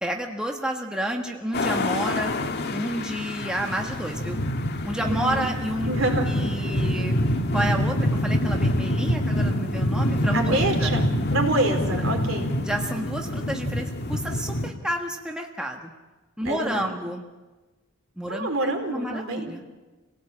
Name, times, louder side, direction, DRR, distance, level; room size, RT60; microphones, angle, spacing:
voice 1, 0.0-2.3 2.7-4.4 4.8-5.9 6.3-10.9 12.0-12.1 12.6-15.9 16.4-17.3 18.2-19.8, right 1 dB, 5° right, 1 dB, 1.5 m, -30 dB
sound 1, 1.5-14.7, left 1 dB, 50° left, 1.7 m, -26 dB
voice 2, 5.0-5.4 5.9-6.3 10.3-12.6 16.4-16.9 18.3-19.5, right 1 dB, 65° right, 3 dB, 4.4 m, -27 dB
28.0 x 17.5 x 8.7 m, 1.2 s
head